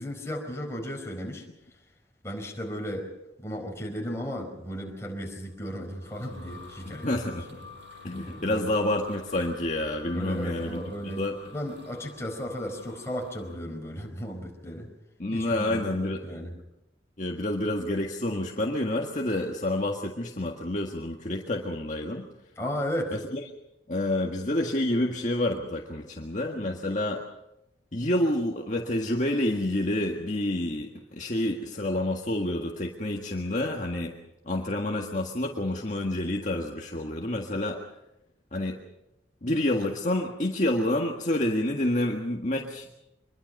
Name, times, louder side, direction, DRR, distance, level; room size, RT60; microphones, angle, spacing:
voice 1, 0.0-1.4 2.2-3.1 3.4-7.2 8.1-8.7 10.1-11.2 11.5-14.9 15.3-16.6 22.6-23.2, equal, 15° left, 1 dB, 4.5 m, -35 dB
sound 1, 5.6-13.6, left 3 dB, 85° right, 5.7 m, -48 dB
voice 2, 6.8-7.5 8.0-10.8 11.2-11.4 15.2-16.2 17.2-22.3 23.1-23.4 23.9-27.2 27.9-34.1 34.4-37.8 38.5-38.8 39.4-42.9, left 1 dB, 45° left, 0 dB, 1.7 m, -28 dB
25.0 x 22.0 x 5.5 m, 0.89 s
head